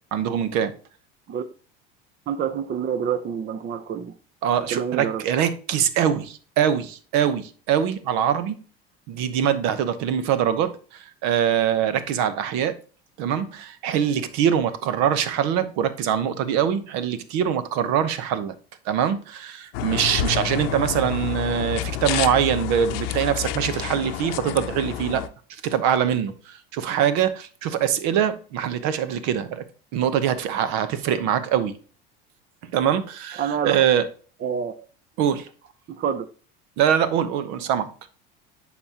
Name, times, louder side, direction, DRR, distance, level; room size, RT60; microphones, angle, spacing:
voice 1, 0.1-0.7 4.4-8.6 9.1-12.8 13.2-18.5 18.8-25.2 25.5-29.6 29.9-31.8 32.7-34.1 34.6-34.7 35.2-35.5 36.8-37.9, right 9 dB, 65° right, 1.0 m, -23 dB
voice 2, 2.3-4.1 4.7-5.2 33.4-33.9 34.4-34.7 35.9-36.3, right 7 dB, 35° right, 0.6 m, -27 dB
sound 1, 19.7-25.3, left 12 dB, 80° left, 0.7 m, -29 dB
11.0 x 4.3 x 2.9 m
hypercardioid pair, 85°, 30 cm